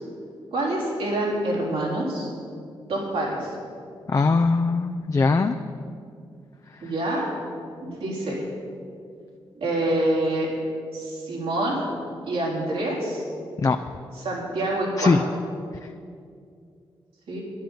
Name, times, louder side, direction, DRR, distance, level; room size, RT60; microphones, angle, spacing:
voice 1, 0.5-2.3 2.9-3.5 6.8-7.3 7.8-8.4 9.6-10.5 10.9-11.8 12.3-13.2 14.2-15.1 17.3-17.4, right 1 dB, 80° right, -4 dB, 3.9 m, -26 dB
voice 2, 4.1-5.6 6.7-6.9 13.6-13.8 15.0-15.2, left 4 dB, 35° left, 7 dB, 0.5 m, -21 dB
10.5 x 10.0 x 7.2 m, 2.3 s
cardioid pair, 60°, 10 cm